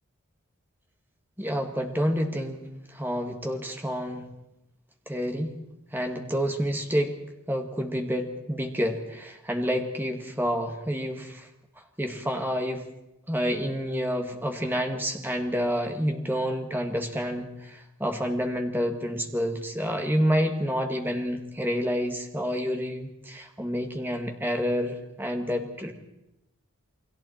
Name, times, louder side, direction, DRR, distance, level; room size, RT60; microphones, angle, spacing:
voice 1, 1.4-4.2 5.1-5.5 5.9-7.1 7.5-11.5 12.0-12.8 13.3-25.9, equal, 10° right, 3 dB, 1.9 m, -28 dB
29.0 x 21.5 x 4.5 m, 0.90 s
head